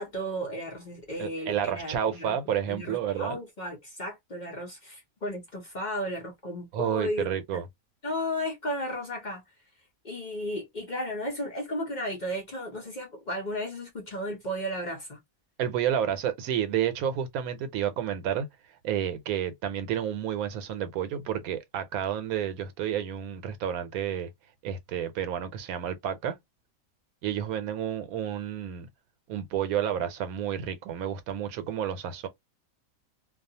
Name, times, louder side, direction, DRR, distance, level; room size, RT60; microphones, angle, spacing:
voice 1, 0.0-2.4 2.7-7.6 8.0-9.4 10.0-15.2, equal, 45° left, 0.7 m, -34 dB
voice 2, 1.2-3.4 6.7-7.7 15.6-18.5 18.8-24.3 24.6-26.4 27.2-28.9 29.3-32.3, right 9 dB, 90° right, 1.1 m, -30 dB
2.3 x 2.3 x 2.6 m
omnidirectional pair, 1.5 m